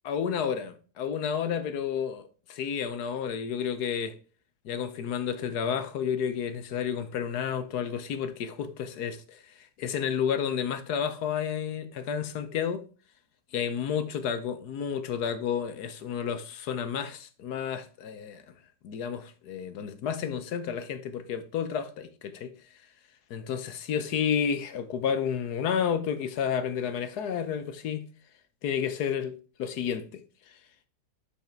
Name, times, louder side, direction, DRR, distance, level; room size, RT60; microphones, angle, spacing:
voice 1, 0.0-4.1 4.6-9.4 9.8-12.8 13.5-18.4 18.8-22.5 23.3-28.0 28.6-30.2, left 7 dB, 70° left, 1.4 m, -31 dB
6.6 x 5.6 x 4.4 m
omnidirectional pair, 1.8 m